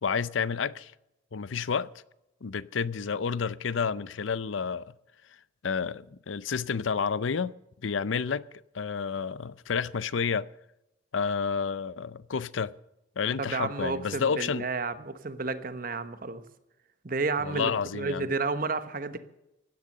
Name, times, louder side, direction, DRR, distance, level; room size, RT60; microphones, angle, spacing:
voice 1, 0.0-0.9 1.3-1.9 2.4-4.9 5.6-7.5 7.8-8.5 8.7-10.5 11.1-12.7 13.2-14.7 17.4-18.3, left 6 dB, 80° left, 0.6 m, -30 dB
voice 2, 13.4-16.4 17.0-19.2, right 3 dB, 45° right, 1.1 m, -31 dB
16.5 x 10.5 x 6.6 m
head